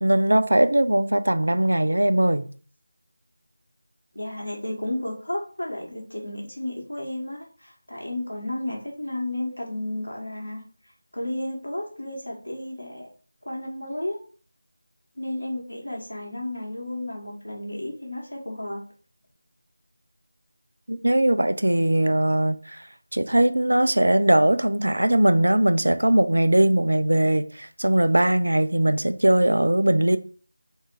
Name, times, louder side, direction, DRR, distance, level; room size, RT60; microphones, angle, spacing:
voice 1, 0.0-2.5 20.9-22.9 23.1-30.2, right 1 dB, 75° right, 0.4 m, -20 dB
voice 2, 4.1-10.6 11.1-13.1 13.4-14.2 15.2-18.8, left 1 dB, 85° left, 1.5 m, -32 dB
4.0 x 2.5 x 4.6 m
figure-of-eight pair, 165°, 0 cm